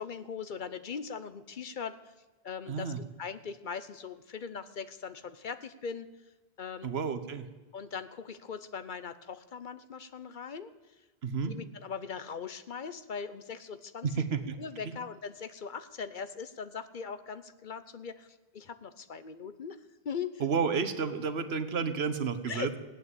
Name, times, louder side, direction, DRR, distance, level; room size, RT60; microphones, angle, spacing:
voice 1, 0.0-2.1 2.4-6.1 6.6-6.9 7.7-10.7 11.4-14.1 14.6-19.8 20.0-20.4 22.5-22.8, left 6 dB, 55° left, 12 dB, 0.9 m, -40 dB
voice 2, 2.7-3.0 6.8-7.5 11.2-11.6 14.0-14.6 20.4-22.7, right 5 dB, 80° right, 10 dB, 1.3 m, -31 dB
16.5 x 9.3 x 8.2 m, 1.1 s
omnidirectional pair, 1.0 m